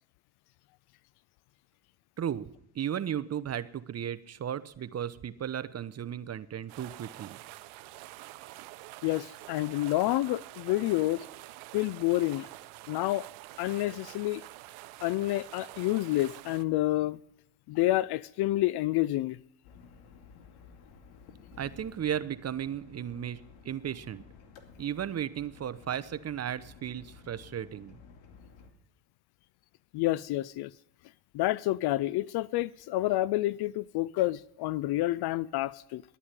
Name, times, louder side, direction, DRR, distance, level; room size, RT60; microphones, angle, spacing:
voice 1, 2.2-2.5 2.7-7.4 21.6-24.2 24.8-28.0, right 9 dB, 30° right, 0.8 m, -35 dB
sound 1, 6.7-16.6, right 18 dB, 75° right, 0.9 m, -47 dB
voice 2, 9.0-11.2 11.7-12.5 12.9-13.3 13.6-14.4 15.0-17.2 17.7-19.4 29.9-30.7 31.3-36.0, left 16 dB, 55° left, 0.5 m, -29 dB
sound 2, 19.6-28.7, left 5 dB, 70° left, 2.3 m, -54 dB
11.5 x 9.8 x 9.1 m
supercardioid pair, 95°, 48 cm